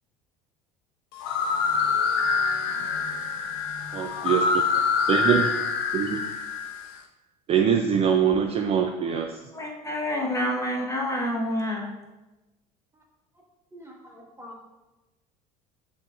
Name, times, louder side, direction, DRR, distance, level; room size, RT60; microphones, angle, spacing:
sound 1, 1.1-6.9, left 5 dB, 65° left, 0.6 m, -26 dB
voice 1, 3.9-4.6 5.1-5.5 5.9-6.2 7.5-9.3, right 7 dB, 35° right, 4 dB, 0.4 m, -23 dB
voice 2, 9.5-11.9, left 1 dB, 15° left, -2 dB, 1.1 m, -28 dB
voice 3, 13.7-14.6, left 1 dB, 15° right, -2 dB, 1.3 m, -46 dB
6.3 x 2.7 x 2.4 m, 1.1 s
hypercardioid pair, 70°, 18 cm